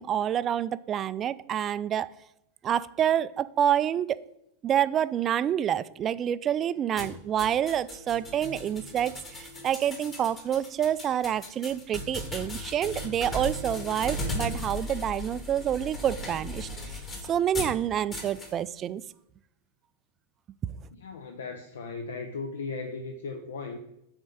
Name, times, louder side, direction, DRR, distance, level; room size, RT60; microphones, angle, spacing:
voice 1, 0.0-2.1 2.6-4.2 4.6-17.0 17.3-19.0, right 10 dB, 30° right, 0.3 m, -28 dB
sound 1, 7.0-17.8 18.1-18.5, left 1 dB, 25° left, 1.9 m, -37 dB
voice 2, 20.9-23.8, left 4 dB, 65° left, 0.6 m, -37 dB
6.1 x 4.4 x 6.5 m
figure-of-eight pair, 90°, 0 cm